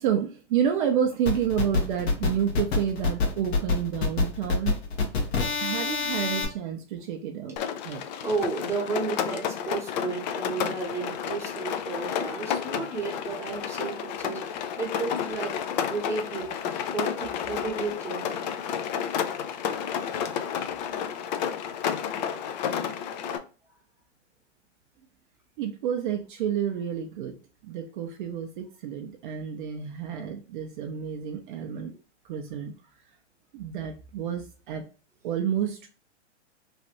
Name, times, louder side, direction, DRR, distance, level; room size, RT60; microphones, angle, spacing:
voice 1, 0.0-4.7 5.6-7.6 7.8-8.0 12.5-12.6 20.1-20.2 25.6-27.4 27.6-31.9 32.3-32.7 33.5-34.8 35.2-35.9, right 9 dB, 45° right, 0.5 m, -29 dB
sound 1, 1.3-6.4, left 4 dB, 60° left, 1.2 m, -26 dB
Rain, 7.6-23.4, left 8 dB, 40° left, 0.4 m, -31 dB
voice 2, 8.2-15.6 15.9-16.6 16.9-18.4, right 4 dB, 5° right, 0.7 m, -33 dB
3.1 x 2.5 x 2.8 m
hypercardioid pair, 125°, 35 cm